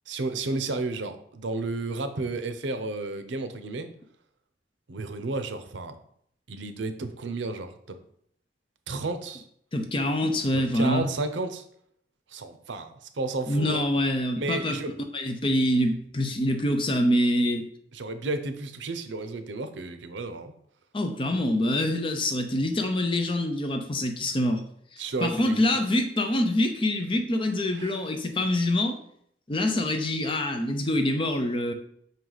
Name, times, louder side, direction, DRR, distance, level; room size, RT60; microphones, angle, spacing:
voice 1, 0.1-3.9 4.9-6.0 6.5-8.0 8.9-9.4 10.7-11.6 12.3-13.9 14.4-14.9 17.9-20.5 25.0-25.6 27.7-27.9, right 3 dB, 90° right, 9 dB, 0.6 m, -32 dB
voice 2, 9.7-11.1 13.5-14.8 15.1-17.7 20.9-24.6 24.9-29.0 29.5-31.7, left 1 dB, 30° left, 5 dB, 0.6 m, -25 dB
5.3 x 4.6 x 4.0 m, 0.68 s
head